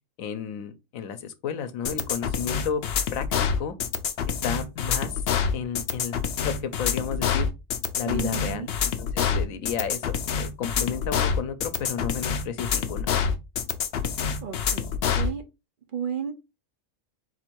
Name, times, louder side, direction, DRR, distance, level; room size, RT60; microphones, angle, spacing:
voice 1, 0.2-2.8 3.1-3.3 3.6-3.7 4.4-5.2 5.5-7.5 8.0-8.7 9.0-13.1, left 7 dB, 80° left, 1.1 m, -32 dB
sound 1, 1.8-15.3, left 7 dB, 60° left, 0.7 m, -26 dB
voice 2, 8.1-8.7 14.4-15.4 15.9-16.3, right 7 dB, 50° right, 0.7 m, -33 dB
4.3 x 2.6 x 4.5 m
omnidirectional pair, 1.4 m